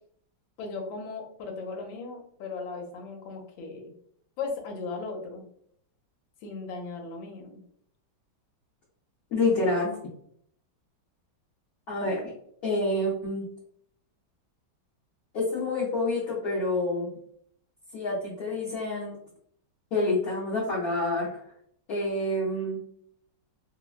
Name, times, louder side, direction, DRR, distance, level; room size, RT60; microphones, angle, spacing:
voice 1, 0.6-3.9 4.4-5.4 6.4-7.6, left 4 dB, 75° left, 2 dB, 1.4 m, -37 dB
voice 2, 9.3-10.0 11.9-12.3 12.6-13.4 15.3-17.1 17.9-19.1 19.9-21.3 21.9-22.8, left 2 dB, 60° left, -6 dB, 1.0 m, -27 dB
3.3 x 2.1 x 2.3 m, 0.66 s
omnidirectional pair, 2.1 m